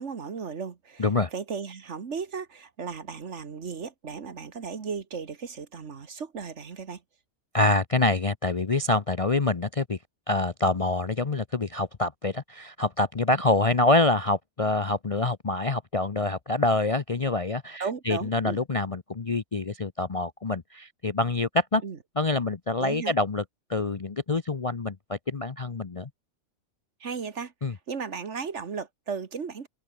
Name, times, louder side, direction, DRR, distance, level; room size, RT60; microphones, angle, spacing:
voice 1, 0.0-1.0 1.3-7.0 17.8-18.6 21.8-22.0 22.8-23.1 27.0-29.7, right 5 dB, 55° right, 1.7 m, -35 dB
voice 2, 1.0-1.3 7.5-10.0 10.3-21.8 22.2-23.4 23.7-26.1 27.6-27.7, left 2 dB, 30° left, 0.7 m, -26 dB
omnidirectional pair, 1.5 m